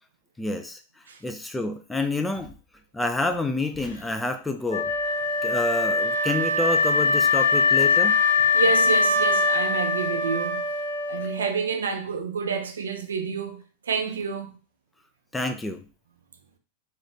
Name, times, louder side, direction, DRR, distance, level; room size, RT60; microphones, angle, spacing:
voice 1, 0.4-0.8 1.2-2.5 2.9-4.9 5.4-8.1 15.3-15.8, left 2 dB, 10° left, 0.4 m, -28 dB
Wind instrument woodwind instrument, 4.7-11.7, left 4 dB, 80° left, 0.7 m, -22 dB
voice 2, 8.5-10.6 11.1-14.6, right 5 dB, 70° right, 0.5 m, -28 dB
3.1 x 2.8 x 2.5 m
figure-of-eight pair, 90°, 0 cm